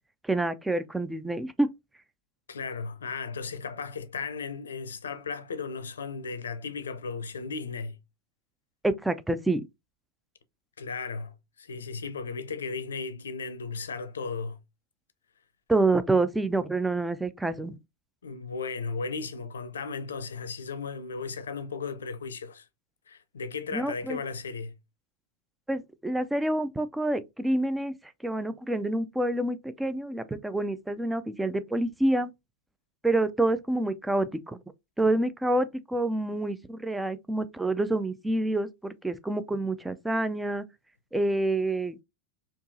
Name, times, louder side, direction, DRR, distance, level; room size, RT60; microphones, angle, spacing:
voice 1, 0.2-1.7 8.8-9.6 15.7-17.8 23.7-24.2 25.7-27.9 28.2-32.3 33.0-34.6 35.0-40.6 41.1-41.9, right 2 dB, 5° right, 0.4 m, -27 dB
voice 2, 2.5-8.0 10.8-14.6 18.2-22.7 23.1-24.7, left 4 dB, 70° left, 0.5 m, -35 dB
4.5 x 2.8 x 2.6 m
figure-of-eight pair, 90°, 0 cm